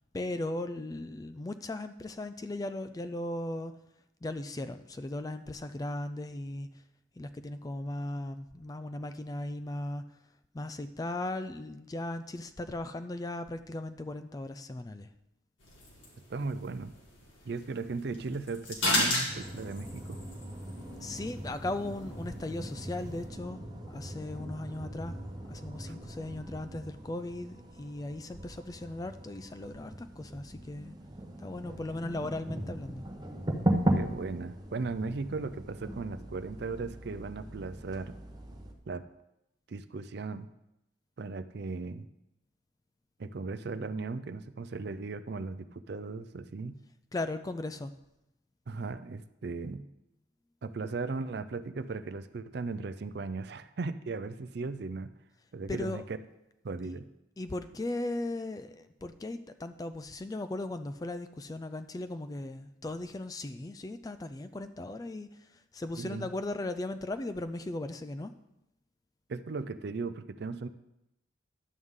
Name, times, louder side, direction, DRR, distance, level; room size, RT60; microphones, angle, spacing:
voice 1, 0.1-3.8 4.2-6.8 7.2-10.1 10.5-15.1 21.0-25.2 25.4-30.9 31.4-33.1 47.1-47.9 55.7-56.0 57.4-65.5 65.7-68.3, left 2 dB, 20° left, 11 dB, 0.3 m, -37 dB
sound 1, 15.6-23.3, left 1 dB, 75° left, 2.5 m, -36 dB
voice 2, 16.3-16.9 17.4-20.2 25.9-26.0 34.0-38.2 38.9-39.1 39.7-40.5 41.2-42.1 43.2-46.8 48.7-49.9 50.6-55.1 55.5-56.2 56.6-57.1 66.0-66.3 69.3-70.7, right 3 dB, 55° right, 13 dB, 0.4 m, -37 dB
sound 2, 19.3-38.7, right 1 dB, 20° right, 0.8 m, -38 dB
11.0 x 7.9 x 3.7 m, 0.89 s
head